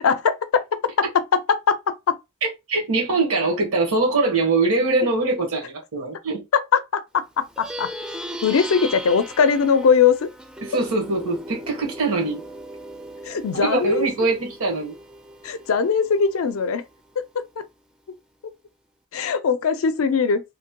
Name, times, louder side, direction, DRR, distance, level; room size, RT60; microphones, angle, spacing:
voice 1, 0.0-2.2 6.5-7.9 8.4-10.3 13.2-14.1 15.4-16.8 17.2-17.7 19.1-20.4, left 6 dB, 75° left, 0.4 m, -21 dB
voice 2, 2.4-6.4 10.6-12.4 13.5-15.0, right 3 dB, 75° right, 1.2 m, -22 dB
Plucked string instrument, 7.4-17.1, equal, 5° right, 0.4 m, -38 dB
3.1 x 2.1 x 2.8 m
head